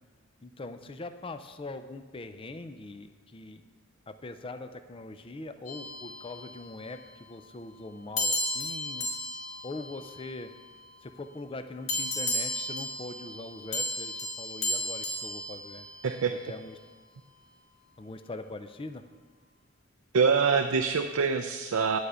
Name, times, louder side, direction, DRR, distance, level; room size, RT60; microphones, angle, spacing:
voice 1, 0.4-3.6 4.1-9.1 9.6-10.5 11.0-15.9 16.5-16.8 18.0-19.0, left 2 dB, 25° left, 9 dB, 0.5 m, -42 dB
sound 1, 5.7-6.9 8.2-10.9 11.9-16.4, left 1 dB, 70° left, 2.2 m, -34 dB
voice 2, 16.0-16.3 20.1-22.0, right 5 dB, 85° right, 6 dB, 0.5 m, -25 dB
11.0 x 5.0 x 8.0 m, 1.5 s
head